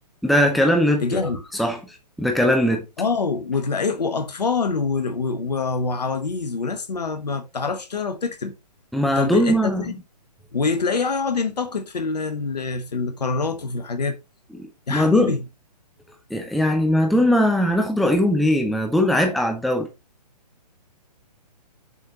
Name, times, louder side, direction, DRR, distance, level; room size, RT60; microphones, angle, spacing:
voice 1, 0.2-1.3 1.6-2.8 8.9-9.9 14.9-15.3 16.3-19.9, equal, ahead, 0.7 m, -20 dB
voice 2, 1.0-1.4 3.0-8.5 9.1-9.9 10.5-14.2 14.9-15.4, left 4 dB, 70° left, 1.3 m, -25 dB
7.0 x 4.4 x 4.0 m
figure-of-eight pair, 130°, 21 cm